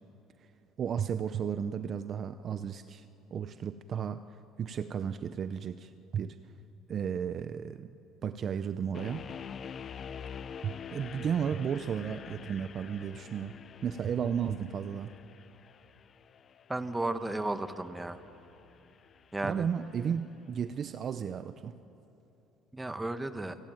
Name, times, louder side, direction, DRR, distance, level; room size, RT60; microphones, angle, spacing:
voice 1, 0.8-4.2 4.6-6.4 6.9-7.9 8.2-9.2 10.6-13.5 13.8-15.1 19.4-21.7, right 7 dB, 35° right, 11 dB, 0.6 m, -34 dB
sound 1, 8.9-20.0, left 7 dB, 35° left, 0.6 m, -47 dB
voice 2, 16.7-18.2 19.3-19.7 22.7-23.6, right 2 dB, 10° right, 10 dB, 1.1 m, -34 dB
28.5 x 18.0 x 9.1 m, 3.0 s
cardioid pair, 135°, 0 cm